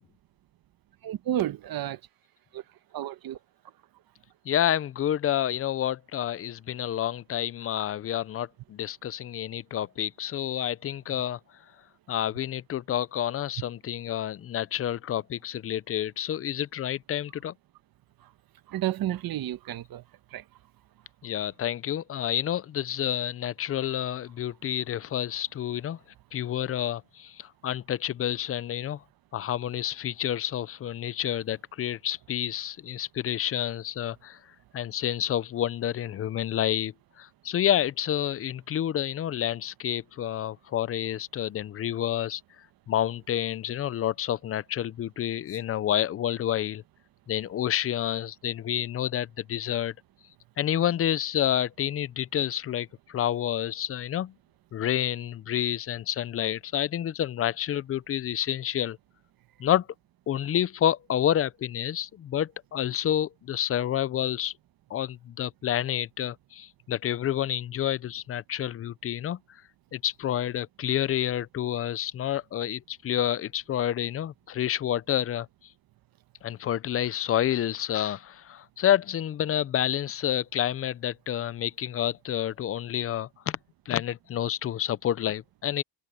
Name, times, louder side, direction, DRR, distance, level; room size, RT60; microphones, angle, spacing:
voice 1, 1.0-2.0 2.5-2.6 2.9-3.4 18.7-20.0 20.3-20.4, right 12 dB, 50° right, 1.2 m, -31 dB
voice 2, 4.5-11.4 12.1-17.5 21.2-26.0 26.3-29.0 29.3-34.4 34.7-42.4 42.9-46.8 47.3-49.9 50.6-54.3 54.7-59.0 59.6-59.9 60.3-64.5 64.9-69.4 69.9-75.5 76.4-83.6 83.9-85.8, left 11 dB, 30° left, 0.5 m, -29 dB
cardioid pair, 125°, 44 cm